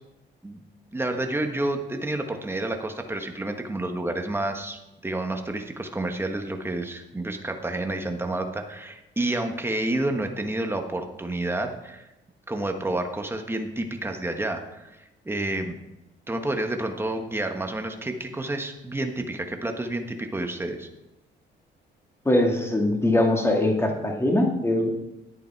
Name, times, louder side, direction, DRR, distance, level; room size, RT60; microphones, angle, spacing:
voice 1, 0.9-12.1 12.5-14.9 15.2-15.7 16.3-20.9, right 2 dB, 10° right, 5 dB, 1.4 m, -29 dB
voice 2, 22.3-24.9, left 1 dB, 15° left, 1 dB, 2.1 m, -22 dB
11.0 x 8.5 x 4.6 m, 0.96 s
cardioid pair, 90°, 20 cm